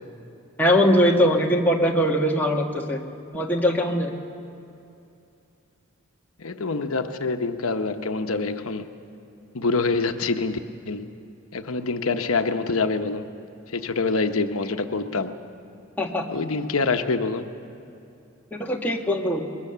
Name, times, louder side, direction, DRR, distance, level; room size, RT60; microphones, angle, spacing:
voice 1, 0.6-3.0 3.3-4.1 16.0-16.3 18.5-19.5, equal, 10° left, -1 dB, 1.5 m, -21 dB
voice 2, 6.4-8.9 9.5-10.6 10.9-11.1 11.5-13.3 13.7-15.3 16.3-17.5, left 3 dB, 85° left, 7 dB, 0.9 m, -25 dB
23.5 x 21.5 x 6.8 m, 2.7 s
head